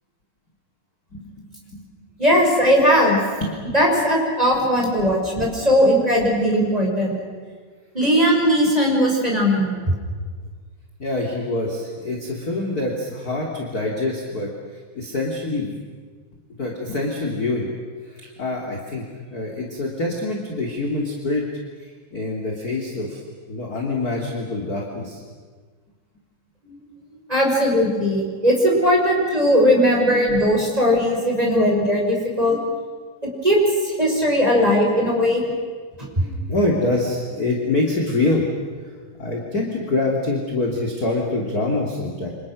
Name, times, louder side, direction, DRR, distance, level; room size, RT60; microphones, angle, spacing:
voice 1, 2.2-3.2 3.7-7.2 7.9-9.9 26.6-26.8 27.3-32.6 33.4-33.6 33.8-35.4 36.2-36.3, equal, 10° right, -2 dB, 5.8 m, -18 dB
voice 2, 11.0-14.5 14.9-15.8 16.6-17.7 18.0-19.0 19.3-21.4 21.8-23.2 23.5-25.2 36.5-38.5 39.2-42.3, left 2 dB, 25° left, -1 dB, 2.5 m, -25 dB
29.0 x 26.5 x 6.4 m, 1.6 s
omnidirectional pair, 5.2 m